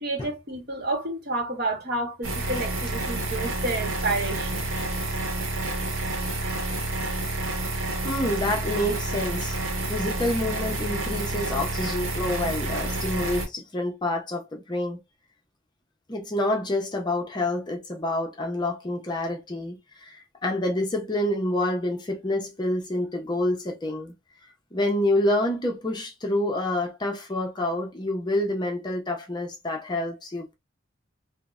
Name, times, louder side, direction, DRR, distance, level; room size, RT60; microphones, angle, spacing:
voice 1, 0.0-4.8, right 2 dB, 50° right, 0.9 m, -30 dB
sound 1, 2.2-13.5, right 2 dB, 80° right, 0.9 m, -29 dB
voice 2, 8.0-15.0 16.1-24.1 24.7-30.5, left 1 dB, 20° left, 0.5 m, -28 dB
3.2 x 2.0 x 2.3 m
head